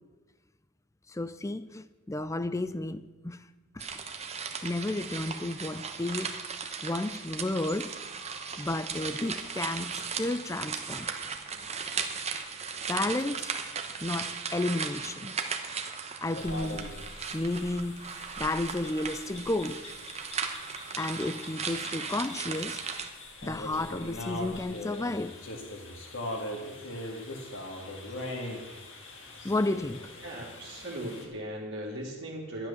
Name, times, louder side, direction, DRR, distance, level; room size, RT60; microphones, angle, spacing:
voice 1, 1.1-3.4 3.7-3.9 4.6-6.4 6.8-7.9 8.6-11.1 12.9-13.5 14.0-15.4 16.2-16.9 17.3-18.0 18.4-19.8 21.0-22.8 23.4-25.4 29.4-30.1, left 2 dB, 15° left, 0.4 m, -32 dB
sound 1, 3.8-23.1, right 5 dB, 30° right, 1.1 m, -37 dB
sound 2, 16.3-31.3, left 1 dB, 60° left, 2.4 m, -41 dB
voice 2, 30.2-32.7, right 1 dB, 55° right, 2.4 m, -38 dB
12.0 x 10.5 x 7.0 m
head